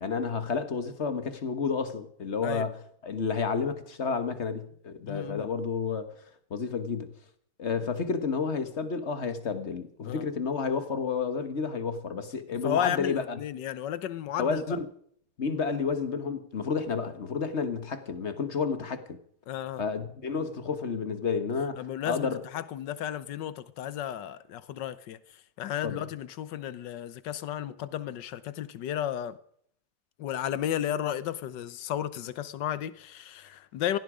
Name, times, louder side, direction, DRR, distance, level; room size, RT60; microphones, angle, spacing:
voice 1, 0.0-6.1 6.5-7.1 7.6-13.4 14.4-14.9 15.4-19.2 19.8-22.4 25.8-26.1, left 5 dB, 45° left, 1.4 m, -31 dB
voice 2, 5.1-5.5 10.0-10.3 12.5-14.6 19.5-19.8 21.8-25.2 25.6-29.4 30.2-34.0, left 11 dB, 90° left, 1.5 m, -33 dB
17.5 x 16.0 x 5.0 m
omnidirectional pair, 1.8 m